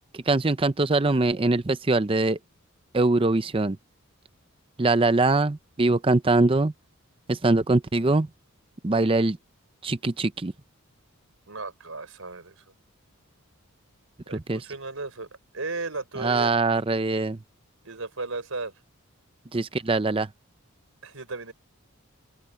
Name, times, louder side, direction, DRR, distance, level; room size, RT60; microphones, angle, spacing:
voice 1, 0.1-2.4 2.9-3.8 4.8-6.7 7.3-8.3 8.8-9.4 9.8-10.5 14.3-14.6 16.2-17.4 19.5-20.3, right 2 dB, 25° right, 0.6 m, -23 dB
voice 2, 11.5-12.6 14.3-15.3 15.5-16.6 17.8-18.7 21.0-21.5, right 3 dB, 70° right, 4.4 m, -35 dB
open air
head